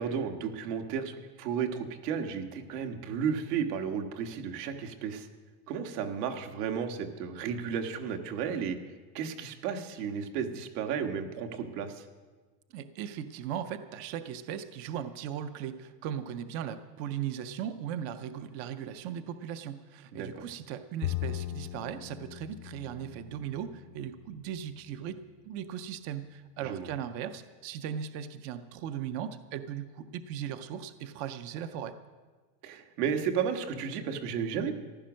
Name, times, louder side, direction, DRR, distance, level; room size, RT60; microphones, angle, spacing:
voice 1, 0.0-5.3 5.7-8.8 9.1-12.0 20.1-20.3 26.6-26.9 32.6-34.7, right 7 dB, 80° right, 5 dB, 1.7 m, -33 dB
voice 2, 12.7-32.0, right 9 dB, 35° right, 11 dB, 0.4 m, -38 dB
Bowed string instrument, 21.0-24.4, left 15 dB, 40° left, 0.5 m, -38 dB
14.5 x 11.5 x 6.2 m, 1.4 s
cardioid pair, 170°, 47 cm